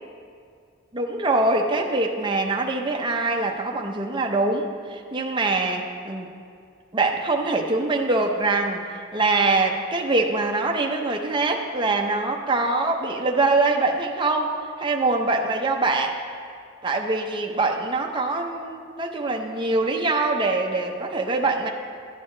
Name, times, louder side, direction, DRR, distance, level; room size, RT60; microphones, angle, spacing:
voice 1, 0.9-6.3 6.9-8.9 9.1-16.2 16.8-21.7, right 3 dB, 25° right, 1 dB, 0.7 m, -23 dB
12.0 x 9.1 x 3.2 m, 2.3 s
head